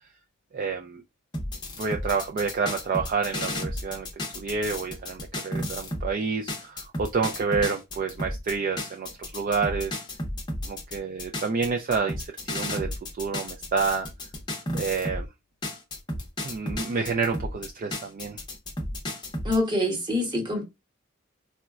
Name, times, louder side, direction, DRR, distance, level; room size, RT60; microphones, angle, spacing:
voice 1, 0.5-1.0 1.8-4.1 4.3-10.0 10.6-14.1 14.7-15.3 16.4-18.4, right 5 dB, 40° right, 0.3 m, -29 dB
sound 1, 1.3-6.1 6.5-15.3 15.6-19.6, left 1 dB, 20° left, 0.6 m, -33 dB
voice 2, 19.4-20.6, left 1 dB, 20° right, 1.0 m, -25 dB
3.9 x 2.1 x 2.3 m
head